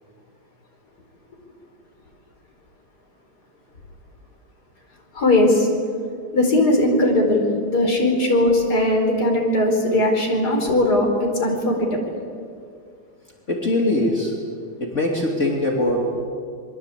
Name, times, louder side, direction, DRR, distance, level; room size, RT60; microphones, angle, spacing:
voice 1, 5.1-5.7 6.3-12.0 15.9-16.0, left 1 dB, 55° left, 1 dB, 5.0 m, -19 dB
voice 2, 13.5-14.3 14.8-16.2, left 1 dB, 40° left, -1 dB, 3.3 m, -22 dB
26.5 x 22.5 x 8.5 m, 2.2 s
omnidirectional pair, 2.0 m